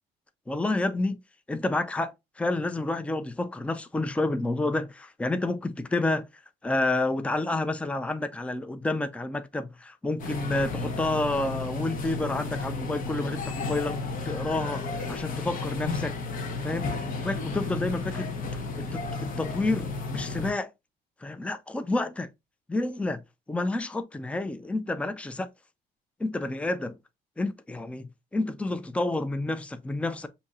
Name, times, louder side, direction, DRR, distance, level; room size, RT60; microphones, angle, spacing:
voice 1, 0.5-1.2 1.5-6.3 6.6-16.2 16.6-17.0 17.2-18.3 18.8-20.7 21.2-22.3 22.7-23.2 23.5-25.5 26.2-27.0 27.4-30.3, left 2 dB, 5° left, 0.5 m, -29 dB
sound 1, 10.2-20.5, left 3 dB, 55° left, 1.1 m, -33 dB
7.0 x 2.7 x 2.4 m
cardioid pair, 110°, 17 cm